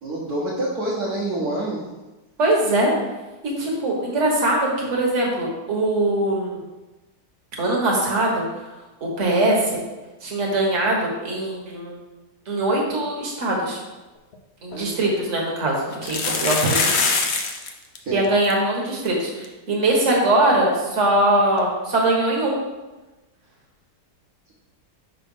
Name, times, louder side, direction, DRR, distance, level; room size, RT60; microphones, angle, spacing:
voice 1, 0.0-1.8 14.7-15.1 18.0-18.3, right 1 dB, 60° right, -7 dB, 1.7 m, -27 dB
voice 2, 2.4-2.9 3.4-6.6 7.6-8.4 9.0-9.8 10.2-12.0 12.5-13.8 14.6-17.2 18.1-22.5, right 1 dB, 45° right, -2 dB, 1.6 m, -22 dB
sound 1, 14.3-14.4 14.7-14.8 15.9-17.7 18.0-18.1 18.2-18.5 19.1-19.2 19.4-19.5 21.6-21.7, left 4 dB, 55° left, 0.7 m, -23 dB
5.6 x 4.0 x 5.4 m, 1.1 s
omnidirectional pair, 1.8 m